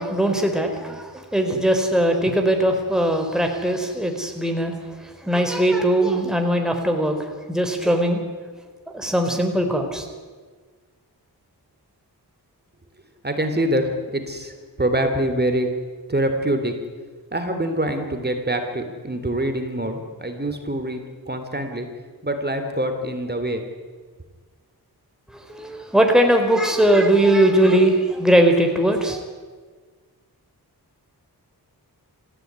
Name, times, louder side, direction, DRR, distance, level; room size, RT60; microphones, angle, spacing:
voice 1, 0.0-8.2 8.9-10.1 25.3-29.2, right 1 dB, ahead, 3 dB, 4.2 m, -20 dB
voice 2, 13.2-15.7 16.1-16.7 17.3-21.0 21.3-21.9 22.2-23.6, right 1 dB, 25° right, 6 dB, 3.6 m, -25 dB
27.0 x 15.5 x 9.8 m, 1.5 s
cardioid pair, 60°, 39 cm